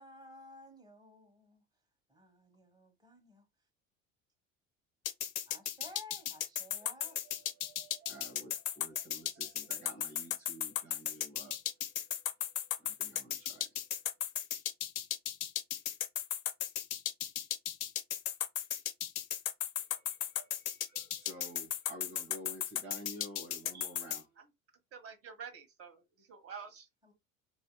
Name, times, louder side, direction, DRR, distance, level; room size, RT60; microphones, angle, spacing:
voice 1, 0.0-1.6 2.1-3.5 5.5-7.2 27.0-27.1, left 1 dB, 10° right, 1.4 m, -54 dB
sound 1, 5.1-24.2, left 10 dB, 80° left, 0.6 m, -36 dB
voice 2, 6.8-11.7 12.2-12.3 12.6-13.7 19.9-24.3, right 1 dB, 90° right, 1.6 m, -51 dB
voice 3, 24.9-26.9, right 6 dB, 35° right, 1.3 m, -48 dB
4.2 x 2.7 x 2.3 m
hypercardioid pair, 65°, 40 cm